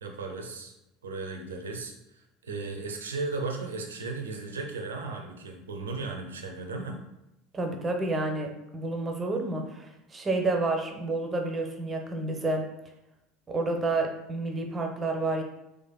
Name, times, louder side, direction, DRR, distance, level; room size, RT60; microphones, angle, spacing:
voice 1, 0.0-0.7 1.0-7.0, right 3 dB, 80° right, 3 dB, 0.5 m, -36 dB
voice 2, 7.5-12.6 13.5-15.4, right 2 dB, 25° right, 3 dB, 0.6 m, -29 dB
4.1 x 2.4 x 2.2 m, 0.90 s
figure-of-eight pair, 70°, 0 cm